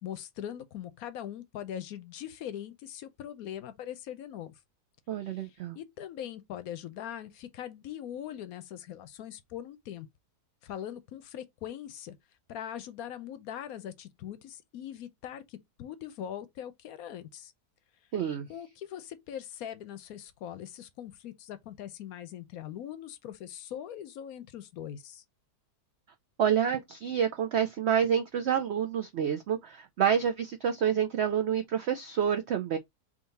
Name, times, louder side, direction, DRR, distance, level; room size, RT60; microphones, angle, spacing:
voice 1, 0.0-4.6 5.2-10.1 10.6-12.2 12.5-17.5 18.5-25.2, left 10 dB, 70° left, 1.0 m, -41 dB
voice 2, 5.1-5.8 18.1-18.5 26.4-32.8, right 8 dB, 85° right, 0.5 m, -28 dB
3.7 x 2.9 x 3.9 m
omnidirectional pair, 1.7 m